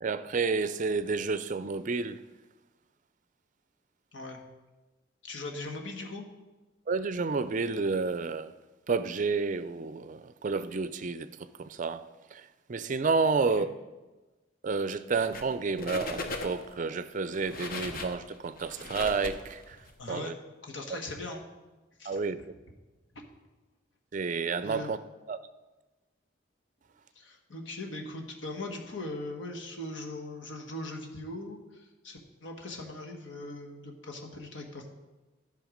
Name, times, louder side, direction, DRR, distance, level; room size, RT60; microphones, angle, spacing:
voice 1, 0.0-2.2 6.9-8.5 8.9-12.0 12.3-12.4 12.7-13.7 14.6-19.8 20.1-20.3 20.9-21.0 22.1-22.5 24.1-25.0 25.3-25.4, right 4 dB, 40° right, 0.4 m, -30 dB
voice 2, 5.2-6.3 13.3-13.7 19.8-20.3 20.6-21.4 22.0-22.5 23.1-23.2 24.6-25.0 27.1-34.9, left 2 dB, 75° left, 1.4 m, -40 dB
sound 1, 15.1-15.5 15.8-16.7 17.3-19.9, left 3 dB, 50° left, 0.9 m, -38 dB
12.5 x 5.7 x 5.1 m
head